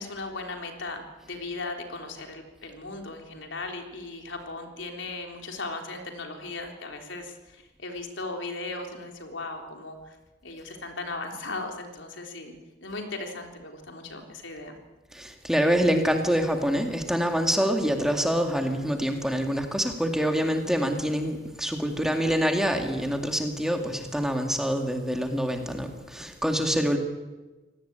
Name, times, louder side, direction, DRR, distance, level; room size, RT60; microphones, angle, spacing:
voice 1, 0.0-10.2 10.4-12.5 12.8-14.8, left 3 dB, 80° left, 3 dB, 3.8 m, -37 dB
voice 2, 15.1-27.0, equal, 5° right, 3 dB, 2.2 m, -26 dB
25.5 x 18.5 x 9.0 m, 1.2 s
head